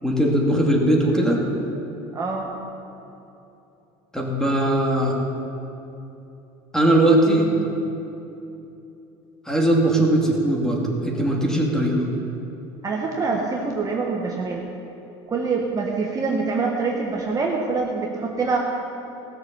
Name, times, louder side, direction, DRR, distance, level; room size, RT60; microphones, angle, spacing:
voice 1, 0.0-1.4 4.1-5.2 6.7-7.5 9.5-12.1, right 1 dB, 5° left, -2 dB, 2.3 m, -20 dB
voice 2, 2.1-2.5 12.8-14.6 15.3-18.6, right 4 dB, 25° right, -1 dB, 1.3 m, -25 dB
16.5 x 6.8 x 6.9 m, 2.9 s
supercardioid pair, 115°, 13 cm